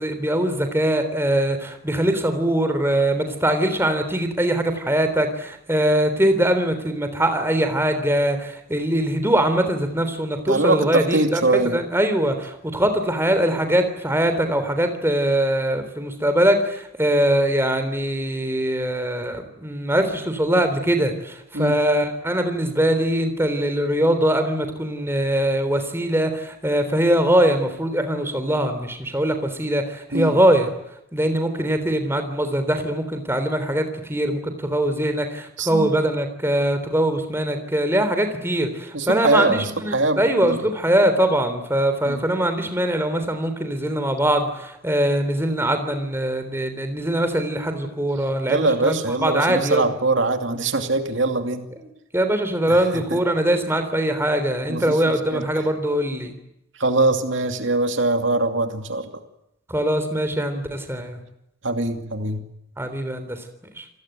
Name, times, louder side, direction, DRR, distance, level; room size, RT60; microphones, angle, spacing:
voice 1, 0.0-30.7 31.1-49.8 51.8-56.3 59.7-61.2 62.8-63.4 63.8-63.9, right 1 dB, 10° right, 8 dB, 3.5 m, -22 dB
voice 2, 10.5-11.8 21.5-21.8 30.1-30.4 35.6-35.9 38.9-40.6 42.0-42.2 48.5-51.7 52.7-52.8 53.1-53.2 54.7-55.4 56.8-59.1 61.6-62.4, right 2 dB, 65° right, 6 dB, 2.5 m, -22 dB
29.0 x 19.5 x 9.1 m, 0.82 s
head